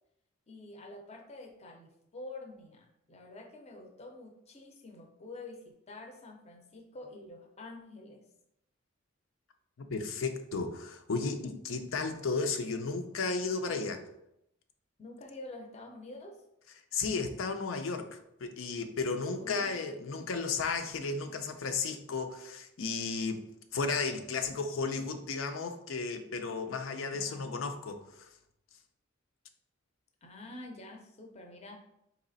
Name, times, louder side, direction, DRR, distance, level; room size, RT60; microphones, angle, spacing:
voice 1, 0.5-8.2 15.0-16.4 19.4-19.9 27.1-27.5 30.2-31.8, left 2 dB, 35° left, 2 dB, 0.6 m, -47 dB
voice 2, 9.9-14.0 16.9-23.4 23.7-28.3, left 4 dB, 75° left, 7 dB, 0.5 m, -34 dB
4.1 x 3.0 x 4.0 m, 0.79 s
head